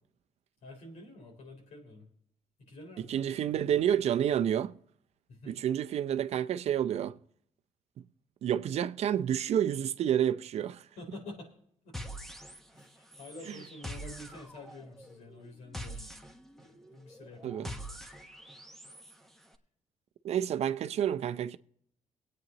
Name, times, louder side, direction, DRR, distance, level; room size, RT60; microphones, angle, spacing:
voice 1, 0.6-2.1 2.6-3.2 3.4-3.8 5.3-5.5 11.0-11.5 11.8-11.9 12.7-16.2 16.6-17.9, left 2 dB, 90° left, 3.9 m, -48 dB
voice 2, 3.1-4.7 5.5-7.1 8.4-10.8 17.4-17.7 20.2-21.6, right 10 dB, 70° right, 0.6 m, -29 dB
sound 1, 11.9-12.9 13.1-19.1, equal, 5° left, 1.3 m, -44 dB
23.5 x 9.0 x 3.0 m
cardioid pair, 100°, 11 cm